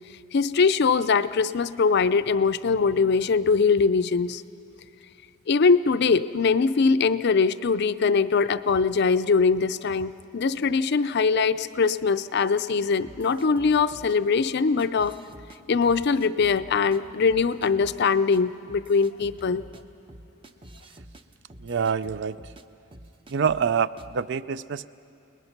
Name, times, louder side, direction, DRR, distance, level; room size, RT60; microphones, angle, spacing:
voice 1, 0.3-4.4 5.5-15.1 15.7-19.6, left 5 dB, 50° left, 13 dB, 0.5 m, -22 dB
sound 1, 13.0-14.2 14.8-15.6 15.9-17.0 17.3-18.0 18.3-18.4 18.7-22.6 22.9-23.7 24.0-24.2, right 1 dB, 25° right, 0.7 m, -48 dB
voice 2, 21.6-22.4 23.3-24.9, right 6 dB, 55° right, 15 dB, 0.4 m, -26 dB
29.5 x 20.0 x 5.9 m, 2.6 s
head